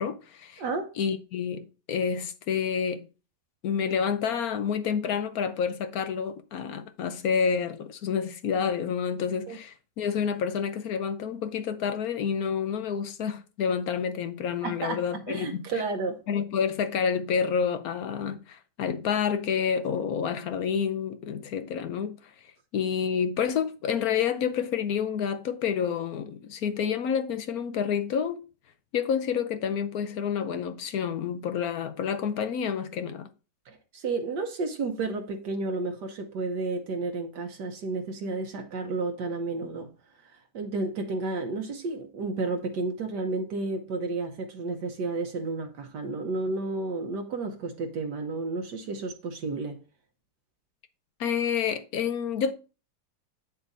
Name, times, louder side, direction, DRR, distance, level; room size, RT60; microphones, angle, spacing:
voice 1, 0.0-0.6 1.0-3.0 3.6-15.7 16.3-22.3 22.7-28.4 28.9-33.3 51.2-52.5, left 7 dB, 65° left, 1.1 m, -29 dB
voice 2, 0.6-0.9 9.5-9.6 14.6-16.2 33.7-39.9 40.5-49.8, right 3 dB, 75° right, 1.5 m, -32 dB
8.1 x 7.0 x 2.6 m
omnidirectional pair, 1.8 m